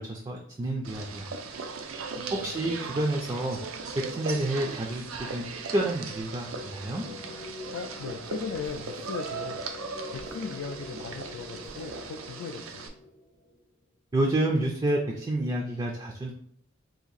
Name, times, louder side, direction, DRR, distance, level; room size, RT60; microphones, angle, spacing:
voice 1, 0.1-1.3 2.3-3.6 4.0-5.0 5.3-5.5 5.7-7.0 14.1-16.3, right 1 dB, 20° right, 0 dB, 0.4 m, -29 dB
sound 1, 0.8-12.9, right 4 dB, 90° right, 0.5 m, -38 dB
sound 2, 3.3-3.7 4.5-5.0 5.7-6.1 6.8-7.4 8.6-9.3 10.1-10.8 11.6-12.1, right 1 dB, 70° right, 0.9 m, -48 dB
sound 3, 6.3-13.7, left 2 dB, 35° left, 0.6 m, -46 dB
voice 2, 7.7-9.7 10.1-12.9, left 5 dB, 75° left, 4 dB, 0.3 m, -38 dB
2.7 x 2.5 x 3.9 m, 0.66 s
head